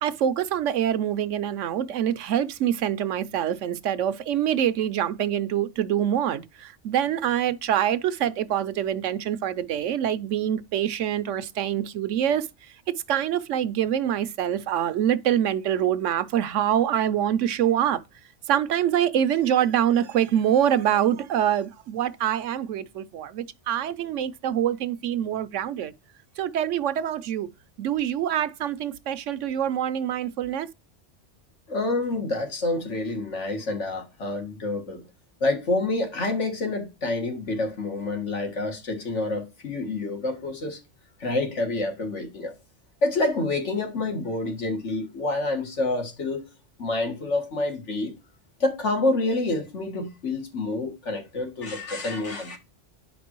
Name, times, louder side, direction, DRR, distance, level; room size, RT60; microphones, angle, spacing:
voice 1, 0.0-12.5 13.1-18.0 18.5-25.9 26.4-27.5 27.8-30.7, right 10 dB, 90° right, 1.0 m, -25 dB
voice 2, 31.7-35.0 35.4-40.8 41.2-42.5 43.0-46.4 46.8-48.1 48.6-52.6, left 2 dB, 75° left, 2.0 m, -27 dB
9.9 x 5.2 x 3.0 m
omnidirectional pair, 1.2 m